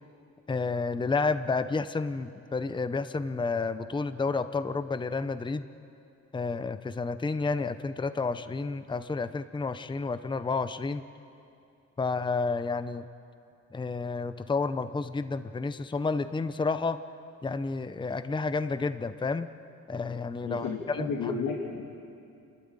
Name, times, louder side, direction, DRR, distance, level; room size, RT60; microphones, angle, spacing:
voice 1, 0.5-5.7 6.3-11.0 12.0-13.1 13.7-17.0 17.4-19.5 19.9-21.3, left 4 dB, 15° left, 12 dB, 0.7 m, -30 dB
voice 2, 20.4-21.9, left 4 dB, 70° left, -2 dB, 2.6 m, -32 dB
28.0 x 12.5 x 9.0 m, 2.7 s
cardioid pair, 90°, 30 cm